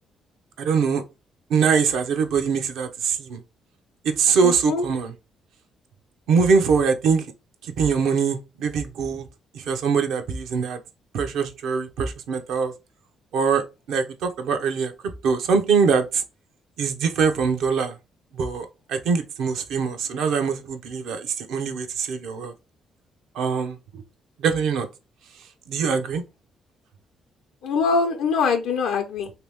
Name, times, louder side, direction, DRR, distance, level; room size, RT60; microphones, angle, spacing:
voice 1, 0.6-1.0 1.5-3.4 4.0-5.1 6.3-7.3 7.6-9.3 9.5-10.8 11.1-12.7 13.3-14.9 15.2-16.2 16.8-17.9 18.3-22.5 23.3-24.0 24.4-24.9 25.7-26.2, right 5 dB, 85° right, 0.7 m, -23 dB
voice 2, 4.4-4.8 27.6-29.3, left 5 dB, 85° left, 0.6 m, -23 dB
3.0 x 2.9 x 3.4 m
cardioid pair, 90°, 0 cm